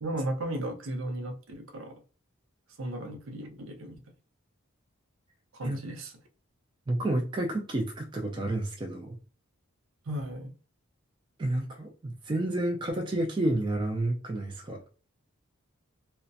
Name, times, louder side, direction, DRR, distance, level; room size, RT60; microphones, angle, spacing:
voice 1, 0.0-2.0 2.8-4.0 5.5-6.1 10.1-10.5, right 1 dB, 65° right, 0.6 m, -35 dB
voice 2, 6.9-9.2 11.4-14.8, right 1 dB, 20° right, 0.3 m, -30 dB
2.4 x 2.1 x 2.5 m
head